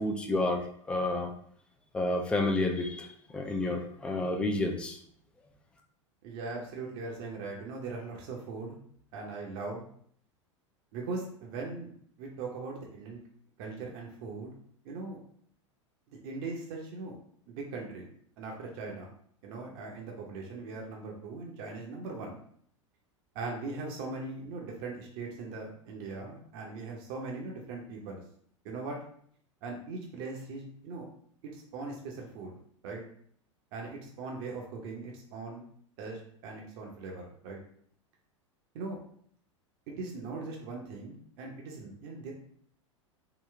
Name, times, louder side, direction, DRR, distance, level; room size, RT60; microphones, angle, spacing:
voice 1, 0.0-1.3 1.9-3.1 3.3-5.0, left 2 dB, 5° left, 4 dB, 0.4 m, -30 dB
voice 2, 6.2-8.8 9.1-9.8 10.9-11.9 12.2-13.2 13.6-14.5 14.8-15.2 16.1-17.2 17.5-18.1 18.4-19.1 19.4-22.4 23.3-28.2 28.6-29.0 29.6-31.1 31.4-32.6 32.8-33.0 33.7-35.6 36.0-37.6 38.7-39.0 39.9-42.3, right 3 dB, 50° right, 0 dB, 0.7 m, -40 dB
3.8 x 2.2 x 3.2 m, 0.62 s
figure-of-eight pair, 90°, 16 cm